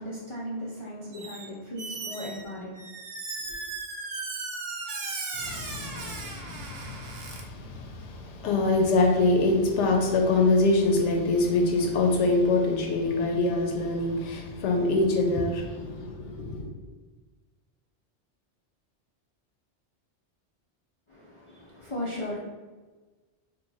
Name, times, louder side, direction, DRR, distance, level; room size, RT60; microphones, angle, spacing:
voice 1, 0.0-2.8 21.1-22.4, left 1 dB, 45° left, 0.4 m, -36 dB
Squeak, 1.1-1.5 1.8-7.4, right 3 dB, 65° right, 0.8 m, -37 dB
voice 2, 5.4-16.7, left 2 dB, 80° left, 0.9 m, -25 dB
2.9 x 2.2 x 3.9 m
omnidirectional pair, 1.2 m